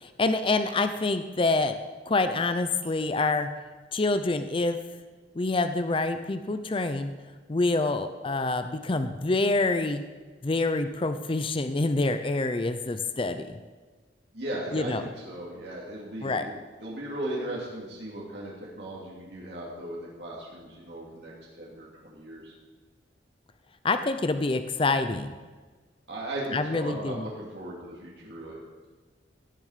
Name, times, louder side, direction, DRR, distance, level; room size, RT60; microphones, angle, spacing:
voice 1, 0.0-1.8 2.1-3.5 3.9-4.8 5.4-7.1 7.5-10.0 10.4-13.6 14.7-15.0 16.2-16.5 23.8-25.3 26.5-27.2, left 3 dB, 30° left, 9 dB, 0.6 m, -26 dB
voice 2, 14.3-22.5 26.1-28.6, right 1 dB, 70° right, -5 dB, 2.8 m, -37 dB
16.5 x 7.1 x 5.1 m, 1.4 s
head